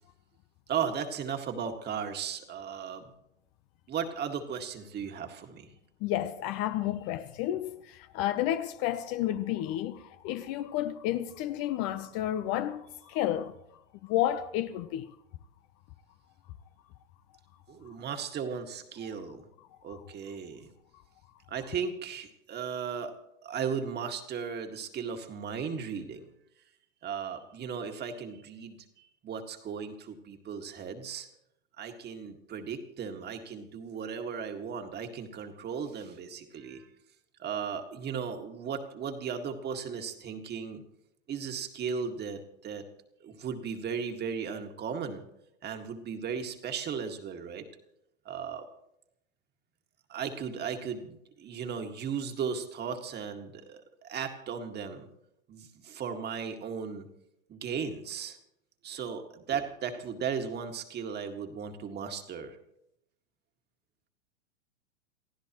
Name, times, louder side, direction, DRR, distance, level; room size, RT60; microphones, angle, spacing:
voice 1, 0.7-3.1 3.9-5.7 17.7-19.5 19.8-20.7 21.5-23.1 23.4-26.3 27.0-28.8 29.2-31.3 31.8-36.9 37.4-40.8 41.3-42.8 43.2-45.2 45.6-47.7 48.3-48.7 50.1-55.1 55.5-57.1 57.5-58.4 58.8-62.6, right 6 dB, 25° right, 2.0 m, -36 dB
voice 2, 6.0-13.5 14.0-15.1 19.9-20.0, left 12 dB, 40° left, 0.9 m, -31 dB
29.0 x 15.0 x 3.1 m
hypercardioid pair, 105°, 37 cm